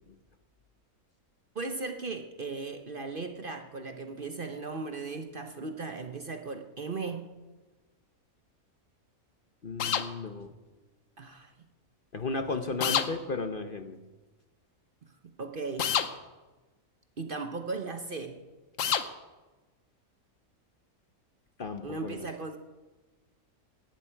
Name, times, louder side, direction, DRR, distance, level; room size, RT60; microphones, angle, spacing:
voice 1, 1.5-7.2 11.2-11.5 15.2-15.9 17.2-18.4 21.8-22.6, right 3 dB, 45° right, 6 dB, 0.9 m, -37 dB
voice 2, 9.6-10.5 12.1-14.0 21.6-22.3, left 3 dB, 45° left, 7 dB, 0.9 m, -34 dB
sound 1, 9.8-10.1 12.8-13.1 15.8-16.1 18.8-19.1, left 8 dB, 65° left, 1.2 m, -27 dB
18.0 x 11.0 x 4.6 m, 1.2 s
omnidirectional pair, 1.5 m